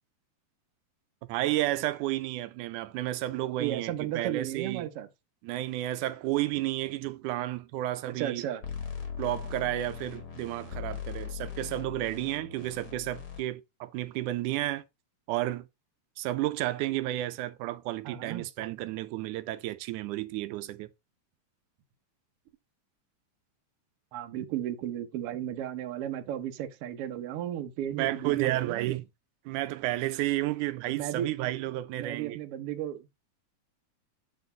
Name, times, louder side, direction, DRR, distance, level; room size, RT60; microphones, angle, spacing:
voice 1, 1.3-4.9 5.4-8.5 9.2-14.8 15.3-15.7 16.2-20.9 28.0-29.0 29.5-32.4, right 15 dB, 90° right, 2.1 m, -32 dB
voice 2, 3.6-5.1 8.1-8.6 18.0-18.4 24.1-28.9 30.9-31.3 31.9-33.1, right 11 dB, 65° right, 1.6 m, -34 dB
sound 1, 8.6-13.4, left 7 dB, 40° left, 1.6 m, -39 dB
8.6 x 4.2 x 3.9 m
omnidirectional pair, 3.4 m